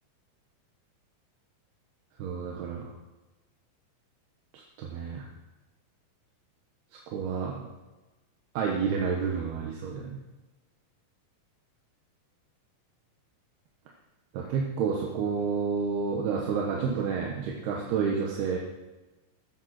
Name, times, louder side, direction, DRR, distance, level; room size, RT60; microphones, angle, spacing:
voice 1, 2.2-2.9 4.5-5.2 7.1-7.7 8.5-10.2 14.3-18.6, right 6 dB, 80° right, -1 dB, 3.4 m, -30 dB
16.0 x 13.0 x 4.4 m, 1.1 s
omnidirectional pair, 4.5 m